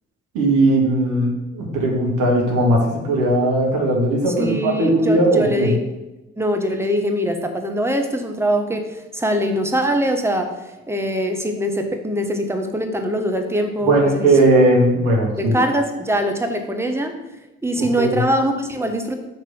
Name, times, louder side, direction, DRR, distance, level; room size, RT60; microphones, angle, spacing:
voice 1, 0.3-5.7 13.8-15.5 17.8-18.2, right 1 dB, 65° right, -1 dB, 1.9 m, -18 dB
voice 2, 4.3-5.8 6.4-10.5 10.9-14.3 15.4-17.1 17.6-19.2, equal, 5° right, 5 dB, 1.2 m, -22 dB
6.0 x 4.4 x 6.2 m, 1.0 s
figure-of-eight pair, 45°, 34 cm